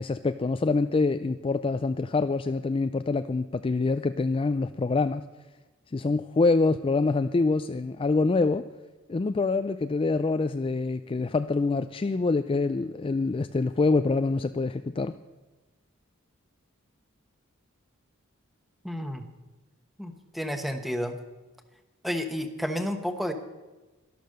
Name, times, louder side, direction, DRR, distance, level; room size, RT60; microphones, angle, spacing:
voice 1, 0.0-5.2 5.9-8.7 9.1-15.1, left 3 dB, 25° left, 11 dB, 0.3 m, -25 dB
voice 2, 18.8-19.3 20.0-21.2 22.0-23.3, equal, ahead, 7 dB, 1.1 m, -31 dB
12.0 x 12.0 x 6.5 m, 1.2 s
head